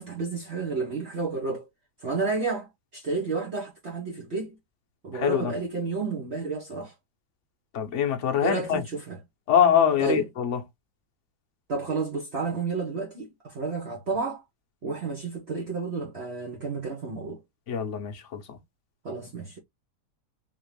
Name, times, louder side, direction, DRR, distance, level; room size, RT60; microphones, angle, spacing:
voice 1, 0.0-1.7 2.0-4.6 5.0-6.9 8.4-9.2 10.0-10.3 11.7-14.4 14.8-17.4 19.0-19.6, right 4 dB, 45° right, 1.0 m, -31 dB
voice 2, 5.2-5.5 7.7-8.8 9.5-10.6 17.7-18.1, left 8 dB, 55° left, 1.0 m, -23 dB
3.7 x 2.9 x 3.2 m
omnidirectional pair, 1.7 m